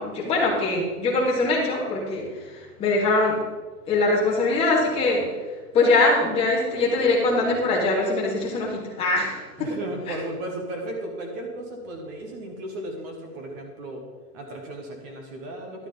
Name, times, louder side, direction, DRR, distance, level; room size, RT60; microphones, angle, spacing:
voice 1, 0.0-3.4 3.9-5.2 5.7-9.7 10.1-10.2, left 2 dB, 10° left, -4 dB, 1.9 m, -22 dB
voice 2, 9.6-14.0 14.3-15.9, right 1 dB, 10° right, 2 dB, 0.6 m, -35 dB
11.5 x 8.8 x 3.8 m, 1.4 s
hypercardioid pair, 165°, 47 cm